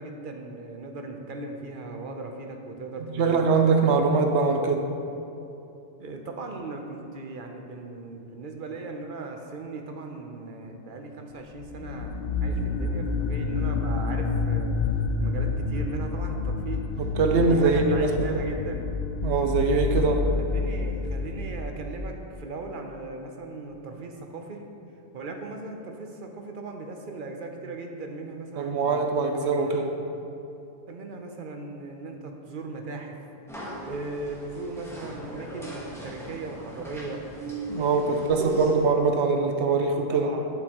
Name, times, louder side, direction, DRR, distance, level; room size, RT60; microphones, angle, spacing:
voice 1, 0.0-3.7 6.0-14.8 15.2-16.9 17.3-18.9 20.4-24.6 25.1-29.0 29.6-29.8 30.9-33.3 33.8-37.2 37.6-38.8 40.1-40.5, right 3 dB, 55° right, 3 dB, 0.8 m, -38 dB
voice 2, 3.2-4.9 17.0-18.4 19.2-20.2 28.6-29.9 37.4-40.3, right 4 dB, 85° right, 4 dB, 1.0 m, -23 dB
sound 1, 11.6-22.2, left 3 dB, 60° left, 0.8 m, -28 dB
sound 2, 33.5-38.8, equal, 5° left, 1.2 m, -41 dB
8.7 x 7.8 x 3.0 m, 2.9 s
omnidirectional pair, 1.1 m